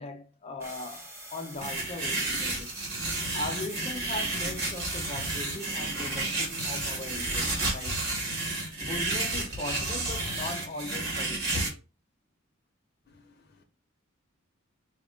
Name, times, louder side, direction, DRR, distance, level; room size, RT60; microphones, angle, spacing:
voice 1, 0.0-2.8 3.3-8.0 8.8-11.8, left 2 dB, 30° left, 0.5 m, -39 dB
sound 1, 0.6-8.1, right 1 dB, 15° right, 1.0 m, -45 dB
sound 2, 1.6-11.7, right 2 dB, 50° right, 1.9 m, -31 dB
voice 2, 13.1-13.6, left 3 dB, 50° left, 0.9 m, -60 dB
5.0 x 2.5 x 3.5 m
head